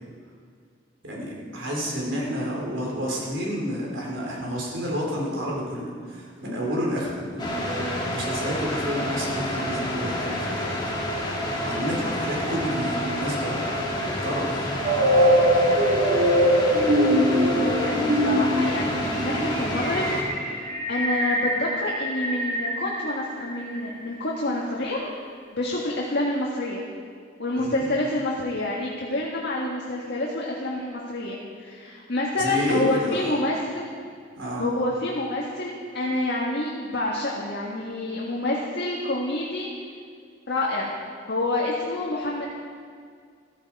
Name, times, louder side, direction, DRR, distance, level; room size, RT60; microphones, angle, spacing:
voice 1, 1.0-10.9 11.2-14.7 15.2-15.3 27.5-27.9 32.4-33.3 34.4-34.7, equal, 75° right, -3 dB, 4.1 m, -30 dB
sound 1, 7.4-20.2, equal, 25° left, 2.5 m, -29 dB
sound 2, 14.8-23.8, equal, 45° right, 1.5 m, -23 dB
voice 2, 17.5-20.1 20.4-20.6 20.9-25.1 25.5-26.8 27.4-33.9 34.6-39.7 40.5-40.9 41.3-42.5, left 2 dB, 60° left, -3 dB, 1.8 m, -28 dB
14.5 x 14.0 x 4.8 m, 2.1 s
head